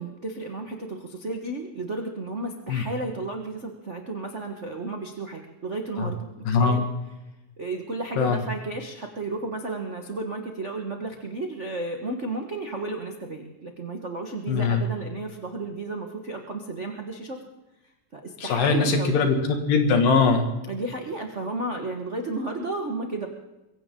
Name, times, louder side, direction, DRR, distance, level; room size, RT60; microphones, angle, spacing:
voice 1, 0.0-6.8 7.6-17.4 18.1-19.3 20.7-23.3, right 2 dB, 70° right, 3 dB, 0.6 m, -33 dB
voice 2, 6.5-6.8 8.2-8.4 14.5-14.8 18.4-20.5, left 4 dB, 85° left, 5 dB, 3.7 m, -21 dB
23.0 x 16.5 x 3.8 m, 0.99 s
omnidirectional pair, 3.8 m